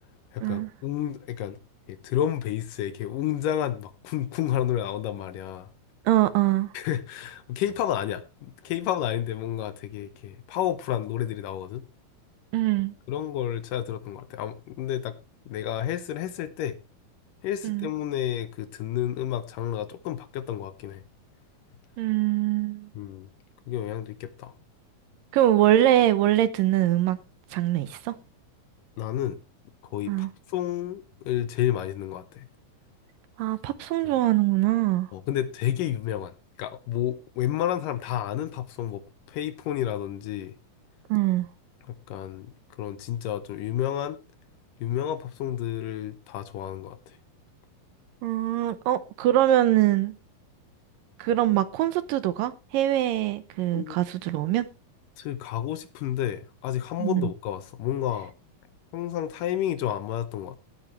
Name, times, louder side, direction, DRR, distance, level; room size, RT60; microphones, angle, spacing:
voice 1, 0.3-1.6 1.9-5.7 6.7-11.8 13.1-15.2 15.5-16.8 17.4-21.0 23.0-23.3 23.7-24.5 29.0-29.4 29.9-32.5 35.1-39.0 39.3-40.6 42.1-44.2 44.8-47.2 53.7-54.0 55.2-58.3 58.9-60.6, left 11 dB, 75° left, 2.3 m, -30 dB
voice 2, 6.1-6.7 12.5-12.9 17.6-17.9 22.0-22.9 25.3-27.2 27.5-28.1 30.1-30.3 33.4-35.1 41.1-41.5 48.2-50.1 51.2-54.7 57.0-57.3, right 13 dB, 75° right, 2.3 m, -23 dB
17.5 x 9.0 x 3.2 m
omnidirectional pair, 4.3 m